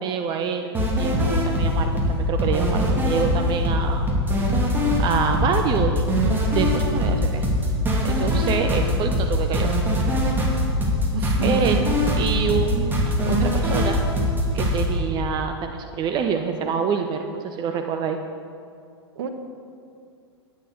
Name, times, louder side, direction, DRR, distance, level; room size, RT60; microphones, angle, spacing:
voice 1, 0.0-4.1 5.0-6.0 6.5-7.4 8.0-9.7 11.4-14.0 14.5-18.2, right 6 dB, 30° right, 5 dB, 0.8 m, -26 dB
sound 1, 0.7-14.9, equal, 15° right, 2.8 m, -22 dB
voice 2, 11.1-11.9 19.2-19.3, right 4 dB, 60° right, 6 dB, 1.4 m, -29 dB
12.0 x 9.3 x 6.6 m, 2.3 s
figure-of-eight pair, 95°, 15 cm